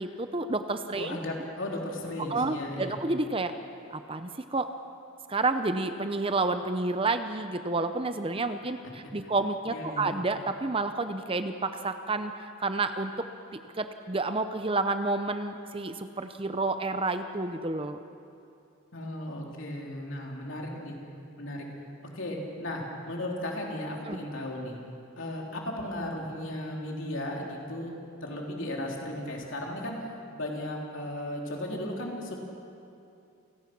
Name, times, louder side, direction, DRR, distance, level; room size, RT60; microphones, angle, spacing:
voice 1, 0.0-1.2 2.3-3.5 3.9-4.7 5.3-18.0 24.0-24.2, right 3 dB, 25° right, 9 dB, 0.7 m, -30 dB
voice 2, 1.0-3.0 9.7-10.2 18.9-21.0 21.4-21.7 22.1-24.8 25.2-28.0 28.2-30.1 30.3-32.4, left 1 dB, 60° left, -1 dB, 3.6 m, -35 dB
29.0 x 18.0 x 6.1 m, 2.6 s
head